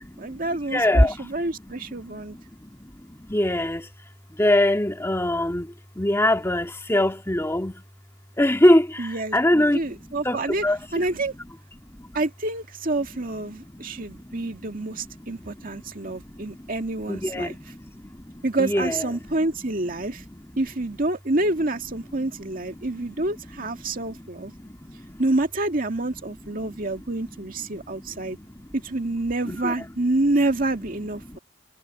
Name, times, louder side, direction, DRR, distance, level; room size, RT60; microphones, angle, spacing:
voice 1, 0.0-2.4 9.0-10.6 10.9-11.3 12.1-17.6 18.4-20.2 20.6-24.5 25.2-28.4 28.7-31.4, right 2 dB, 50° right, 2.0 m, -27 dB
voice 2, 0.7-1.1 3.3-3.8 4.4-5.6 6.0-7.7 8.4-8.9 9.3-9.8 10.3-10.4 10.6-10.8 17.1-17.5 18.6-19.0 29.5-29.7, left 1 dB, 15° left, 2.1 m, -20 dB
head